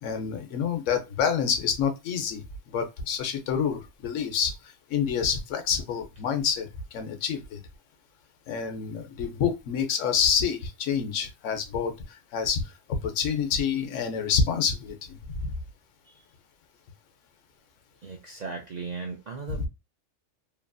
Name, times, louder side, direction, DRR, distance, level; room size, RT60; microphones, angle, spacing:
voice 1, 0.0-7.6 8.5-12.7 13.0-15.5 19.5-19.7, left 7 dB, 90° left, 1.0 m, -28 dB
voice 2, 18.0-19.7, right 4 dB, 70° right, 0.4 m, -37 dB
2.8 x 2.5 x 2.2 m
omnidirectional pair, 1.3 m